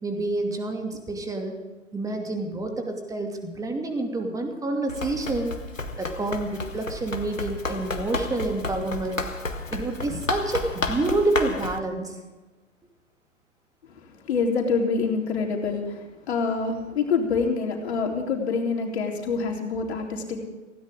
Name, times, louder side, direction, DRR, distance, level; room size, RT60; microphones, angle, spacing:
voice 1, 0.0-1.6 1.9-5.6 6.0-9.2 9.7-12.2, right 2 dB, 10° right, 3 dB, 2.5 m, -28 dB
Run, 4.9-11.8, left 3 dB, 90° left, 1.8 m, -32 dB
voice 2, 14.0-20.4, left 4 dB, 55° left, 1 dB, 3.8 m, -26 dB
19.5 x 17.0 x 3.7 m, 1.2 s
figure-of-eight pair, 110°, 38 cm